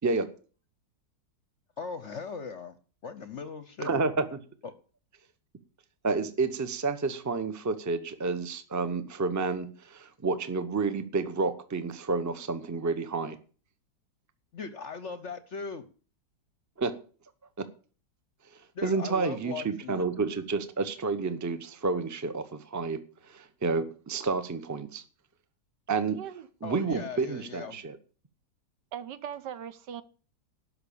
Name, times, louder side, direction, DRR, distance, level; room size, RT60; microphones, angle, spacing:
voice 1, 1.8-2.8 3.0-4.0 4.6-4.7 14.5-15.9 18.7-20.1 26.6-27.8, left 5 dB, 55° left, 12 dB, 0.8 m, -39 dB
voice 2, 3.8-4.4 6.0-13.4 16.8-16.9 17.6-17.7 18.8-25.0 25.9-26.2 26.6-28.0, right 4 dB, 15° right, 11 dB, 0.6 m, -30 dB
voice 3, 26.1-26.5 28.9-30.0, right 9 dB, 70° right, 14 dB, 1.4 m, -39 dB
12.5 x 5.8 x 8.5 m, 0.40 s
omnidirectional pair, 1.9 m